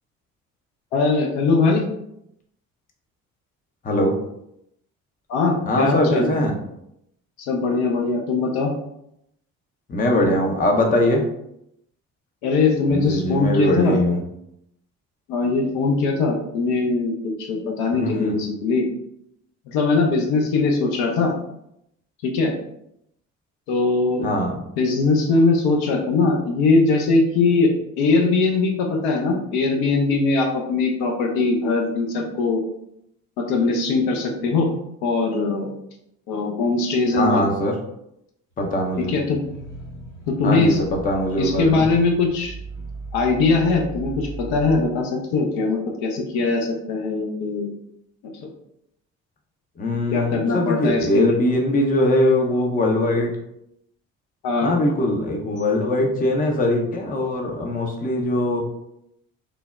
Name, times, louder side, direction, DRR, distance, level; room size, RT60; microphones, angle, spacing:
voice 1, 0.9-1.8 5.3-6.2 7.5-8.7 12.4-14.0 15.3-18.9 19.7-21.3 22.2-22.5 23.7-24.3 24.8-27.7 28.0-32.7 33.4-34.7 35.0-35.7 36.3-37.5 39.0-39.4 40.3-40.8 41.4-42.6 43.1-47.7 48.4-48.5 50.1-51.4 54.4-54.7, left 3 dB, 65° left, 1 dB, 0.6 m, -21 dB
voice 2, 3.8-4.1 5.7-6.6 9.9-11.2 12.9-14.2 17.9-18.4 24.2-24.6 37.1-37.7 38.6-39.1 40.4-41.9 49.8-53.3 54.6-58.6, left 1 dB, 20° left, 2 dB, 0.5 m, -21 dB
sound 1, 38.8-44.8, right 2 dB, 45° left, 0.9 m, -37 dB
3.2 x 2.1 x 2.3 m, 0.78 s
hypercardioid pair, 50°, 40 cm